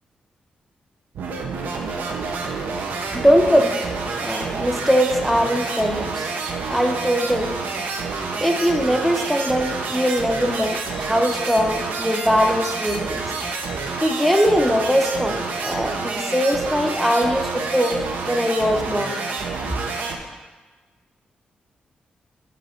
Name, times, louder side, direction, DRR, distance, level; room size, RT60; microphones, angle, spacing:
sound 1, 1.1-20.2, right 4 dB, 80° right, 0.7 m, -28 dB
voice 1, 3.1-3.8 4.2-6.3 6.7-7.5 8.0-8.1 8.4-13.2 14.0-18.0 18.3-19.1, equal, ahead, 2 dB, 0.5 m, -21 dB
7.6 x 3.2 x 5.7 m, 1.3 s
wide cardioid pair, 160°, 3 cm